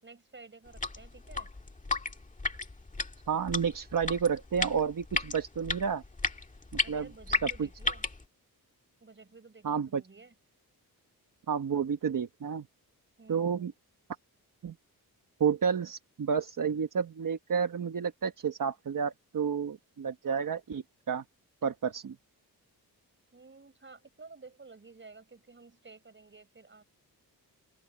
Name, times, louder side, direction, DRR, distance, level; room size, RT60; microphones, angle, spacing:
voice 1, 0.0-1.5 6.8-8.1 9.0-10.3 13.2-13.7 23.3-26.8, right 4 dB, 30° right, 5.6 m, -53 dB
sound 1, 0.7-8.2, left 3 dB, 20° left, 1.9 m, -34 dB
voice 2, 3.3-6.0 6.9-7.5 9.6-10.0 11.5-12.7 13.3-13.7 14.6-14.7 15.4-21.2 21.6-22.1, right 6 dB, 55° right, 1.4 m, -30 dB
open air
wide cardioid pair, 140°, 38 cm